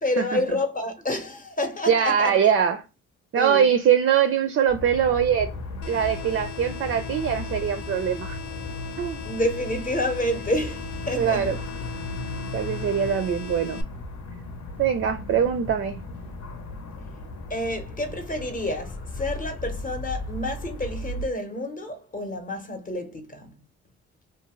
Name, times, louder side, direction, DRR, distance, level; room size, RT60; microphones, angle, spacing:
voice 1, 0.0-2.4 3.4-3.7 9.2-11.4 17.5-23.6, left 1 dB, 25° left, 0.8 m, -29 dB
voice 2, 1.9-2.8 3.3-5.5 5.9-8.4 9.0-9.2 11.2-11.6 12.5-13.8 14.8-16.0, right 8 dB, 45° right, 0.4 m, -22 dB
sound 1, 4.7-21.3, left 2 dB, 65° left, 0.8 m, -36 dB
sound 2, 5.8-13.8, left 8 dB, 85° left, 0.5 m, -39 dB
2.5 x 2.2 x 2.9 m
cardioid pair, 90°, 30 cm